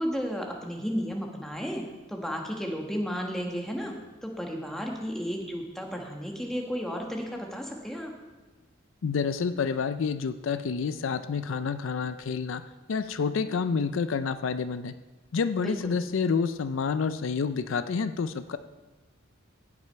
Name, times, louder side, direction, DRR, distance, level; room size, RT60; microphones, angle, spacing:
voice 1, 0.0-3.9 4.2-8.1 15.6-16.0, equal, ahead, 0 dB, 1.4 m, -33 dB
voice 2, 9.0-12.6 12.9-14.9 15.3-18.6, left 5 dB, 70° left, 11 dB, 0.4 m, -28 dB
16.5 x 6.1 x 4.5 m, 1.2 s
head